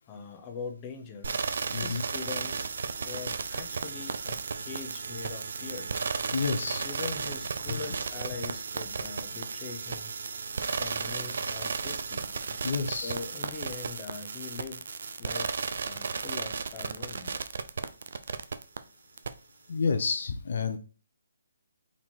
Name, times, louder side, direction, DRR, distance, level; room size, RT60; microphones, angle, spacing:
voice 1, 0.1-1.3 1.7-2.6 3.0-5.9 6.8-10.1 10.7-12.3 12.9-14.8 15.2-17.4, left 5 dB, 20° left, 3 dB, 0.8 m, -42 dB
sound 1, 1.2-18.8 19.2-19.3, right 5 dB, 65° right, 0.5 m, -34 dB
voice 2, 6.3-6.9 7.7-7.8 12.6-13.1 18.3-18.4 19.7-20.8, left 5 dB, 65° left, 8 dB, 0.6 m, -29 dB
4.1 x 2.8 x 4.4 m, 0.36 s
hypercardioid pair, 155°, 0 cm